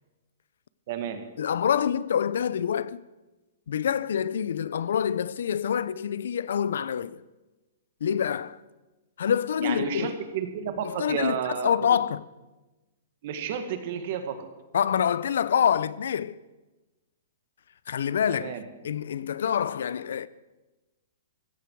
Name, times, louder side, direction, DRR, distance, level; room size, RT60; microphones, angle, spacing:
voice 1, 0.9-1.2 9.6-12.0 13.2-14.5 18.2-18.6, right 7 dB, 40° right, 1.8 m, -32 dB
voice 2, 1.4-3.0 3.7-7.2 8.0-8.6 9.2-10.2 10.8-12.2 14.7-16.4 17.9-20.3, left 8 dB, 70° left, 0.6 m, -26 dB
16.5 x 15.0 x 4.7 m
hypercardioid pair, 170°, 0 cm